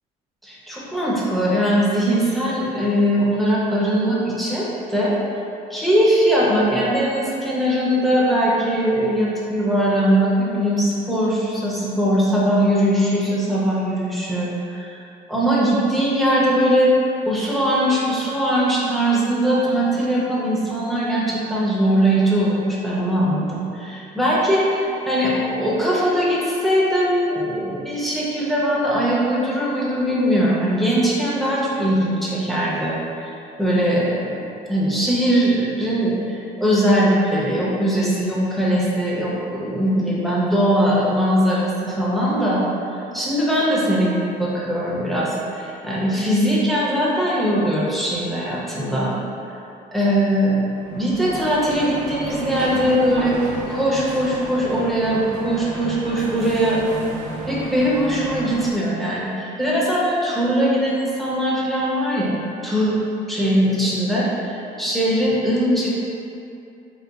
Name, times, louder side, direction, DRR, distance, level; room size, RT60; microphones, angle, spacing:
voice 1, 0.4-5.2 5.7-15.0 15.3-16.9 17.3-33.3 33.6-42.6 42.9-49.1 49.9-50.6 50.9-53.4 53.7-56.8 57.1-57.2 57.5-62.4 62.6-63.0 63.3-65.9, equal, ahead, -7 dB, 0.7 m, -20 dB
sound 1, 50.7-58.7, right 1 dB, 45° right, 0.5 m, -32 dB
3.9 x 2.4 x 2.3 m, 2.7 s
cardioid pair, 110°, 17 cm